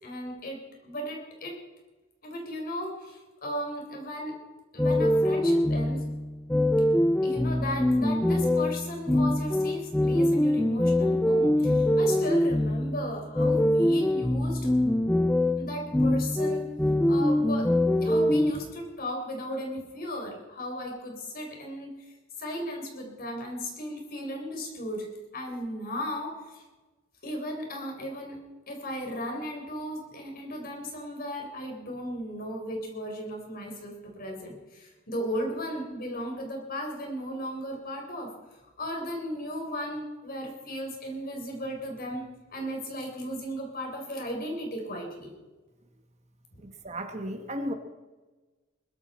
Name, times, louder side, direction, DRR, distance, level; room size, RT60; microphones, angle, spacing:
voice 1, 0.0-1.6 2.2-4.3 4.7-6.0 7.2-14.7 15.6-16.7 17.1-17.7 18.0-21.9 22.4-25.1 25.3-26.6 27.2-28.4 28.7-38.3 38.8-42.3 42.5-45.3 46.5-46.6, equal, 50° left, 2 dB, 4.0 m, -35 dB
sound 1, 4.8-18.5, left 1 dB, 5° left, 0.4 m, -24 dB
voice 2, 46.6-47.7, equal, 35° right, 6 dB, 1.3 m, -34 dB
20.5 x 13.5 x 4.3 m, 1.2 s
head